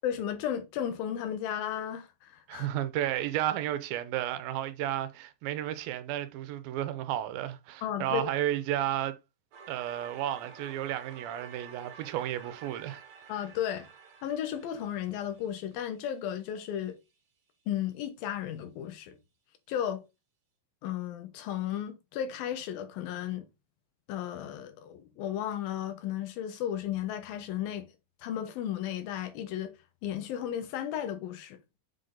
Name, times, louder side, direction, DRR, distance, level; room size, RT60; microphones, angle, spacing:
voice 1, 0.0-2.7 7.8-8.3 13.3-13.9 14.2-17.0 17.7-19.2 19.7-20.1 20.8-23.5 24.1-27.9 28.2-29.7 30.0-31.6, left 10 dB, 80° left, 2.7 m, -34 dB
voice 2, 2.5-9.2 9.7-13.0, right 12 dB, 90° right, 2.5 m, -32 dB
sound 1, 9.5-16.4, right 6 dB, 60° right, 2.4 m, -51 dB
7.3 x 3.9 x 3.7 m
omnidirectional pair, 4.1 m